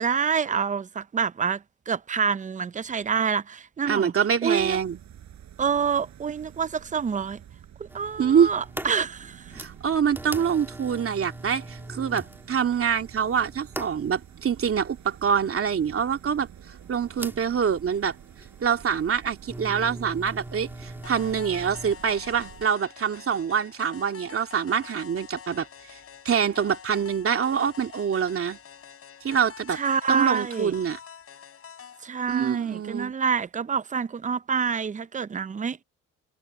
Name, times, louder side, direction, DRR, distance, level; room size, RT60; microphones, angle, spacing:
voice 1, 0.0-4.1 4.4-4.8 5.6-7.4 7.8-9.5 29.7-30.7 32.0-35.8, right 6 dB, 25° right, 0.6 m, -27 dB
voice 2, 3.9-5.0 8.2-8.5 9.5-16.5 16.9-18.1 18.6-25.7 26.2-28.6 29.2-29.8 30.1-31.0 32.3-33.1, right 7 dB, 45° right, 2.6 m, -25 dB
sound 1, 4.6-22.7, right 10 dB, 65° right, 7.7 m, -48 dB
sound 2, 7.9-21.9, right 1 dB, 5° right, 3.0 m, -41 dB
sound 3, 21.0-32.1, left 7 dB, 50° left, 4.6 m, -46 dB
cardioid pair, 90°, 30 cm